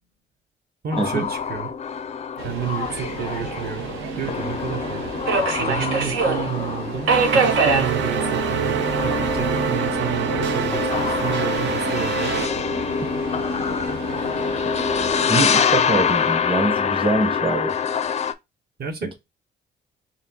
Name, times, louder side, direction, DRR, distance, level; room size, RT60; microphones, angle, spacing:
voice 1, 0.8-1.7 2.4-3.9 4.2-5.1 5.6-12.4 18.8-19.1, right 7 dB, 50° right, 1.0 m, -30 dB
sound 1, 0.9-18.3, left 6 dB, 35° left, 0.4 m, -26 dB
Subway metro underground, 2.4-15.4, right 4 dB, 85° right, 1.0 m, -28 dB
sound 2, 7.1-12.5, right 8 dB, 65° right, 0.6 m, -25 dB
voice 2, 15.3-17.8, right 2 dB, 25° right, 1.1 m, -24 dB
4.2 x 3.0 x 2.8 m
cardioid pair, 90°, 20 cm